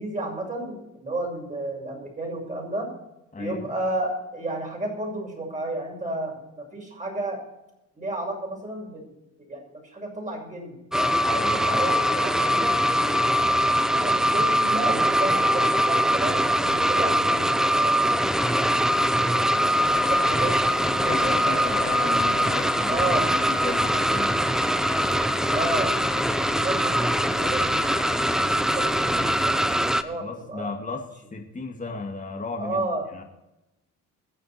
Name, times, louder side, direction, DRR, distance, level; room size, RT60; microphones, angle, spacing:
voice 1, 0.0-2.9 3.4-7.4 7.9-9.1 9.5-10.8 11.1-12.7 13.8-18.2 19.0-22.2 22.9-23.3 25.5-28.1 28.5-30.7 32.6-33.1, right 2 dB, 25° right, 0 dB, 6.4 m, -32 dB
voice 2, 3.3-3.7 11.2-11.8 21.0-24.6 30.2-31.1 31.3-32.9 33.1-33.2, left 3 dB, 25° left, 1 dB, 2.2 m, -34 dB
sound 1, 10.9-30.0, equal, ahead, 0.7 m, -22 dB
sound 2, 19.8-29.5, left 6 dB, 40° left, 1.1 m, -40 dB
22.0 x 7.6 x 4.4 m, 0.92 s
cardioid pair, 90°, 30 cm